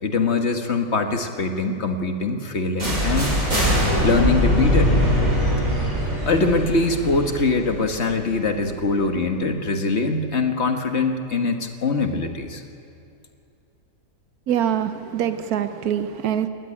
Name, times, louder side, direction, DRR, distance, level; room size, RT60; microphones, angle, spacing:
voice 1, 0.0-3.4 4.0-5.1 6.3-12.6, left 3 dB, 50° left, 5 dB, 1.7 m, -23 dB
sound 1, 2.8-8.6, equal, 70° right, 8.1 m, -22 dB
voice 2, 14.5-16.5, right 9 dB, 85° right, 10 dB, 1.3 m, -24 dB
22.0 x 18.0 x 10.0 m, 2.6 s
omnidirectional pair, 1.5 m